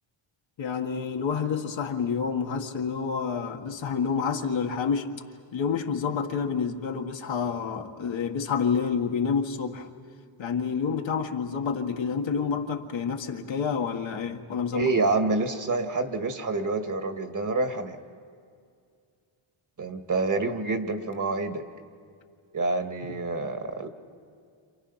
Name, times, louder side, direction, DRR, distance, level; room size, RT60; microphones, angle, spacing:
voice 1, 0.6-5.1 5.5-9.9 10.4-14.9, left 6 dB, 65° left, 3 dB, 1.9 m, -28 dB
voice 2, 14.7-18.0 19.8-21.7 22.5-23.9, right 3 dB, 40° right, 6 dB, 2.1 m, -27 dB
29.5 x 27.5 x 5.8 m, 2.2 s
cardioid pair, 90°, 49 cm